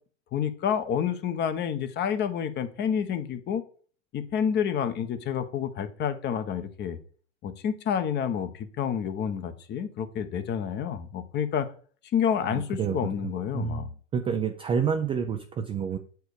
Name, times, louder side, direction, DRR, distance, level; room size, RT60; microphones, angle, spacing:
voice 1, 0.3-3.6 4.1-7.0 7.4-11.7 12.1-13.9, left 8 dB, 30° left, 11 dB, 0.9 m, -29 dB
voice 2, 12.4-16.0, right 7 dB, 15° right, 5 dB, 0.4 m, -29 dB
7.9 x 4.6 x 4.9 m, 0.43 s
hypercardioid pair, 110°, 38 cm